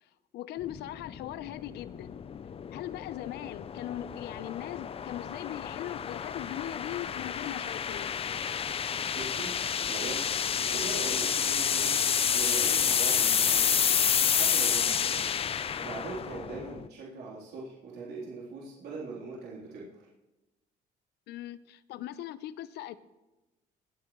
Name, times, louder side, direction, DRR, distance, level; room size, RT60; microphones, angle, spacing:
voice 1, 0.3-2.2 2.7-8.1 15.1-15.2 21.3-22.9, left 13 dB, 80° left, 15 dB, 0.7 m, -39 dB
sound 1, 0.6-16.9, left 7 dB, 35° left, 0.6 m, -29 dB
voice 2, 9.1-9.5 9.8-10.3 10.5-12.0 12.3-13.9 14.3-15.3 15.8-20.0, right 3 dB, 75° right, -6 dB, 3.5 m, -41 dB
22.0 x 8.9 x 3.1 m, 1.1 s
cardioid pair, 110°, 17 cm